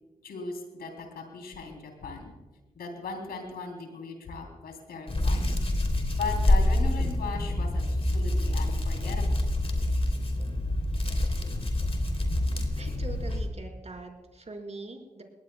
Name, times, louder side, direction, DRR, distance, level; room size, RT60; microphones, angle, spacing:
voice 1, 0.2-2.3 2.7-5.5 6.1-9.4, left 4 dB, 90° left, 3 dB, 3.3 m, -38 dB
Hands, 5.1-13.5, left 1 dB, 40° left, 3.0 m, -26 dB
voice 2, 12.1-15.2, right 2 dB, 45° right, 2 dB, 4.5 m, -43 dB
22.0 x 18.0 x 2.3 m, 1.2 s
cardioid pair, 45°, 15 cm